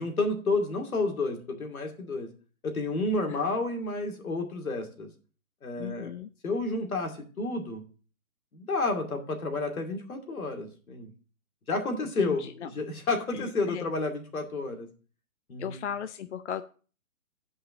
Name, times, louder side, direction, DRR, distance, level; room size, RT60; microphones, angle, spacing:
voice 1, 0.0-2.3 2.6-5.1 5.6-6.1 6.4-7.8 8.5-11.1 11.7-14.9 15.5-15.8, left 3 dB, 90° left, 4 dB, 2.6 m, -30 dB
voice 2, 5.8-6.3 12.2-12.7 13.3-13.9 15.6-16.6, left 8 dB, 55° left, 11 dB, 0.6 m, -37 dB
8.5 x 5.5 x 6.0 m, 0.38 s
hypercardioid pair, 170°, 41 cm